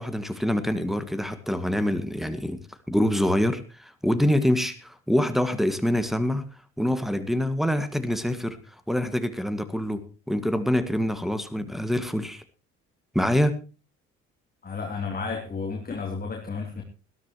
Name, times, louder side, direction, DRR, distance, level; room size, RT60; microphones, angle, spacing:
voice 1, 0.0-6.4 6.8-8.6 8.9-12.4 13.2-13.6, equal, ahead, 9 dB, 1.9 m, -25 dB
voice 2, 14.6-16.8, left 4 dB, 20° left, 1 dB, 3.1 m, -32 dB
20.0 x 13.5 x 3.1 m, 0.33 s
figure-of-eight pair, 55°, 40 cm